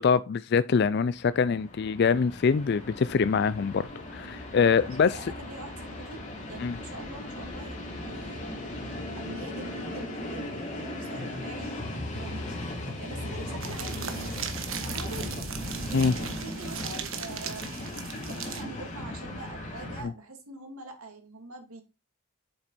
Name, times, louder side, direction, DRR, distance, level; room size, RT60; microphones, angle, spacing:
voice 1, 0.0-5.2 6.6-6.8 15.9-16.1, left 5 dB, 50° left, 0.4 m, -24 dB
Train, 1.1-20.0, left 1 dB, 35° left, 3.1 m, -37 dB
voice 2, 5.0-8.5 9.2-11.8 12.1-14.4 14.7-15.3 15.6-21.8, right 2 dB, 85° right, 2.8 m, -44 dB
sound 1, 13.6-18.6, right 7 dB, 65° right, 1.4 m, -38 dB
7.8 x 7.2 x 4.2 m
head